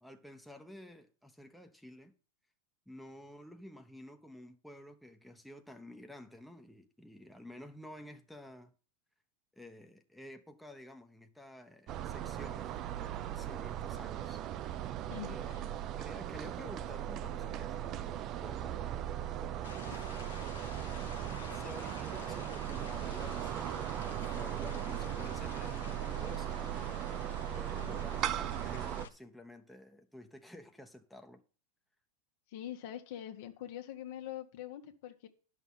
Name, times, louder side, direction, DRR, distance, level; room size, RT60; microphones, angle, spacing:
voice 1, 0.0-2.1 2.9-8.7 9.5-14.4 15.2-20.2 21.5-27.1 27.4-31.4, left 1 dB, ahead, 1.1 m, -51 dB
sound 1, 11.9-29.0, right 11 dB, 45° right, 0.5 m, -38 dB
voice 2, 15.1-15.6 27.8-28.0 32.5-35.3, left 12 dB, 65° left, 1.4 m, -44 dB
sound 2, 19.6-29.1, left 8 dB, 85° left, 0.9 m, -50 dB
10.0 x 6.5 x 5.5 m
hypercardioid pair, 110°, 0 cm